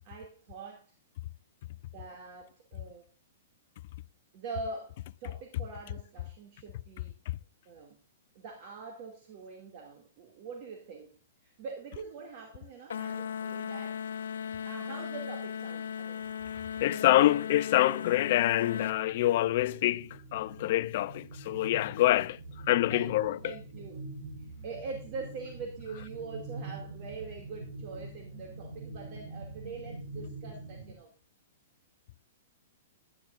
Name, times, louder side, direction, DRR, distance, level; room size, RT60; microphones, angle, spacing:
voice 1, 0.0-0.9 1.9-3.1 4.3-7.1 7.7-8.0 8.3-11.2 11.4-14.0 14.6-16.2 16.9-17.2 21.8-21.9 22.9-24.0 24.4-31.1, right 4 dB, 40° right, 2.6 m, -44 dB
sound 1, 12.9-19.0, left 7 dB, 80° left, 0.9 m, -37 dB
voice 2, 16.8-22.4 22.7-23.5, left 15 dB, 50° left, 0.5 m, -26 dB
sound 2, 18.8-30.9, right 2 dB, 75° right, 5.1 m, -45 dB
21.0 x 11.0 x 2.6 m
hypercardioid pair, 150°, 0 cm